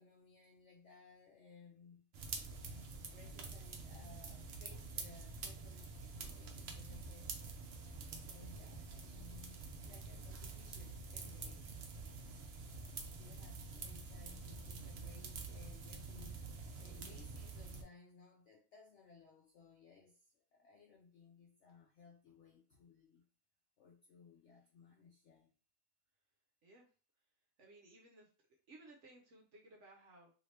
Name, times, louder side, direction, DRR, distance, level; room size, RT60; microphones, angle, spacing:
voice 1, 0.0-2.1 3.1-7.3 8.1-11.7 13.1-16.5 16.8-23.2 23.8-25.5, left 5 dB, 70° left, 0.6 m, -61 dB
sound 1, 2.1-17.8, right 4 dB, 90° right, 0.5 m, -47 dB
voice 2, 27.6-28.3 28.7-30.3, right 2 dB, 60° right, 0.8 m, -59 dB
2.8 x 2.8 x 3.2 m
omnidirectional pair, 1.7 m